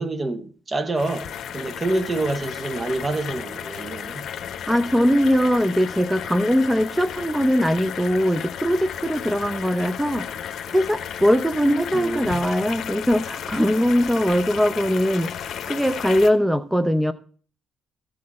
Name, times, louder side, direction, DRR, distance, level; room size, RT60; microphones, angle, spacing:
voice 1, 0.0-4.3 11.9-12.5, right 2 dB, 30° right, 0.8 m, -27 dB
sound 1, 1.0-16.3, left 9 dB, 70° left, 0.9 m, -34 dB
voice 2, 4.7-10.5 10.7-15.3 15.7-17.1, equal, 5° right, 0.6 m, -21 dB
14.5 x 6.5 x 4.1 m
cardioid pair, 90°, 0 cm